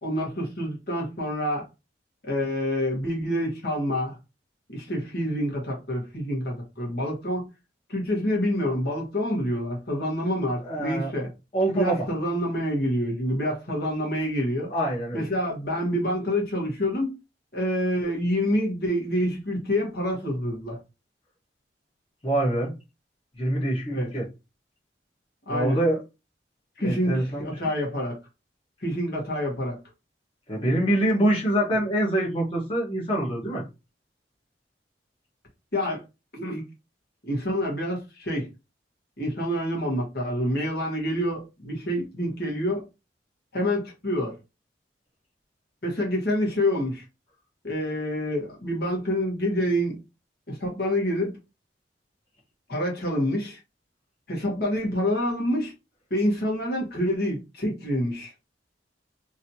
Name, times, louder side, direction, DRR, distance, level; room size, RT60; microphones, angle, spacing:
voice 1, 0.0-1.6 2.2-4.2 4.7-7.5 7.9-11.3 11.7-14.7 15.1-17.1 17.5-20.8 23.9-24.1 25.5-25.8 26.8-28.2 28.8-29.8 35.7-36.0 36.3-36.6 37.2-38.5 39.2-42.8 43.5-44.4 45.8-47.0 47.6-50.0 50.5-51.4 52.7-53.6 54.3-55.7 56.1-58.3, equal, 60° left, 1.4 m, -27 dB
voice 2, 10.6-11.1 11.5-12.0 14.7-15.3 22.2-22.7 23.3-24.2 25.5-26.0 26.8-27.5 30.5-33.6, right 1 dB, 30° left, 1.2 m, -25 dB
3.1 x 2.8 x 2.7 m
head